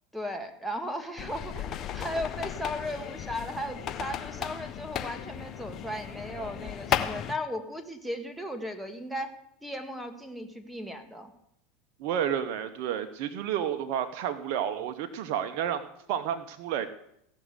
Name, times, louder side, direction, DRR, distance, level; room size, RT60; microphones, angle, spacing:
voice 1, 0.1-9.3 9.6-11.3, equal, 5° right, 5 dB, 1.7 m, -36 dB
sound 1, 1.2-7.3, left 10 dB, 40° left, 0.9 m, -35 dB
voice 2, 12.0-16.9, right 9 dB, 60° right, 7 dB, 0.9 m, -31 dB
16.0 x 6.3 x 8.1 m, 0.77 s
hypercardioid pair, 105°, 0 cm